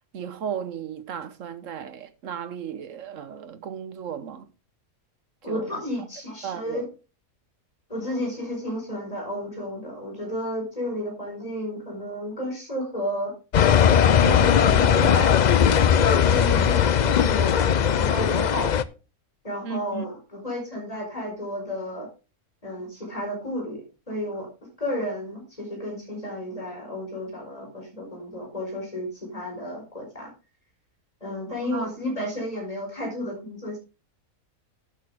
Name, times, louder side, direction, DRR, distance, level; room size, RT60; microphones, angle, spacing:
voice 1, 0.1-4.5 5.4-5.7 6.4-6.9 19.6-20.1 31.6-31.9, right 8 dB, 65° right, 1.3 m, -35 dB
voice 2, 5.4-6.8 7.9-13.3 14.2-15.4 16.3-18.7 19.4-22.1 22.6-24.5 24.8-30.3 31.2-33.8, left 1 dB, 25° left, 4.7 m, -32 dB
sound 1, 13.5-18.8, left 8 dB, 85° left, 0.4 m, -19 dB
12.0 x 8.3 x 3.5 m
omnidirectional pair, 1.5 m